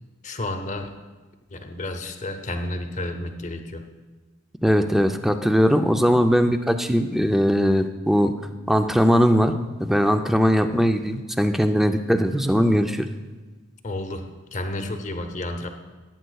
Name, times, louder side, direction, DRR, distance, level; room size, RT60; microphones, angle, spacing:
voice 1, 0.2-1.0 1.5-3.8 13.8-15.7, left 1 dB, 35° left, 6 dB, 0.8 m, -31 dB
voice 2, 4.6-8.3 8.7-9.5 9.8-13.1, equal, ahead, 6 dB, 0.4 m, -20 dB
17.5 x 8.9 x 2.3 m, 1.3 s
head